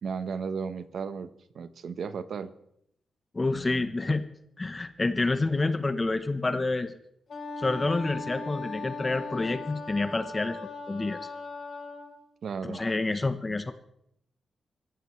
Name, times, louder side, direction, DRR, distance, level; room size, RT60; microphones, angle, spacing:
voice 1, 0.0-2.5 12.4-12.8, right 6 dB, 70° right, 12 dB, 0.9 m, -34 dB
voice 2, 3.3-4.3 4.6-6.9 7.6-10.6 10.9-11.2 12.6-13.7, left 3 dB, 25° left, 10 dB, 0.9 m, -28 dB
Wind instrument woodwind instrument, 7.3-12.2, left 3 dB, 60° left, 3.7 m, -39 dB
25.5 x 15.0 x 3.1 m, 0.76 s
wide cardioid pair, 120°, 0 cm